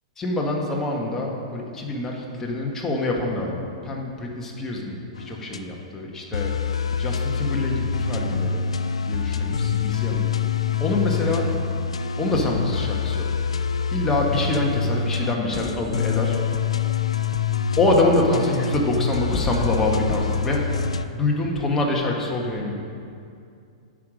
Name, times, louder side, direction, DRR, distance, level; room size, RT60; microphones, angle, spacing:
voice 1, 0.2-6.6 7.0-8.7 9.0-10.3 10.8-11.5 12.2-13.3 13.9-16.4 17.8-20.7 21.1-22.7, left 2 dB, 15° left, -1 dB, 1.4 m, -25 dB
sound 1, 5.2-5.6 6.3-21.1, left 6 dB, 90° left, 0.4 m, -26 dB
9.3 x 5.0 x 6.2 m, 2.4 s
hypercardioid pair, 115°, 3 cm